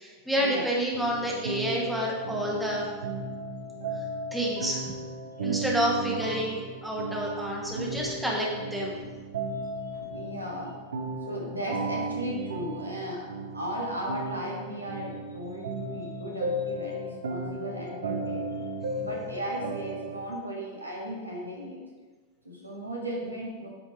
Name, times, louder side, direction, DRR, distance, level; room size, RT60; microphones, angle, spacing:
voice 1, 0.0-2.9 4.3-4.9 5.4-9.0, equal, 5° right, -3 dB, 1.4 m, -29 dB
sound 1, 0.9-20.2, right 2 dB, 65° right, 0.7 m, -35 dB
voice 2, 9.4-10.8 11.3-13.3 13.5-18.5 19.0-21.8 22.4-23.7, equal, 85° right, -2 dB, 1.7 m, -36 dB
8.6 x 4.4 x 5.0 m, 1.3 s
figure-of-eight pair, 90°, 0 cm